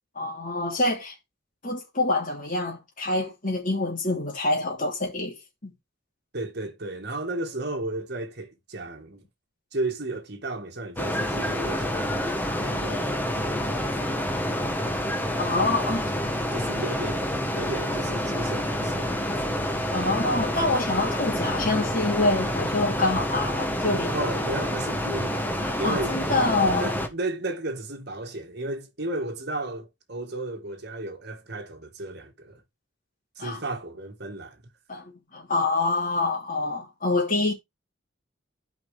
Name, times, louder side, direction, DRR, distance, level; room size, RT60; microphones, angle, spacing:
voice 1, 0.1-1.1 1.6-5.3 5.6-5.7 15.4-16.1 19.9-24.2 25.6-26.9 33.4-33.6 34.9-35.0 35.3-37.5, left 2 dB, 40° left, 3.0 m, -26 dB
voice 2, 6.3-9.2 9.7-13.9 16.5-19.7 24.1-26.2 26.8-32.6 33.4-34.6, right 2 dB, 55° right, 1.9 m, -34 dB
sound 1, 11.0-27.1, left 1 dB, 10° left, 1.3 m, -28 dB
12.0 x 5.2 x 3.5 m
head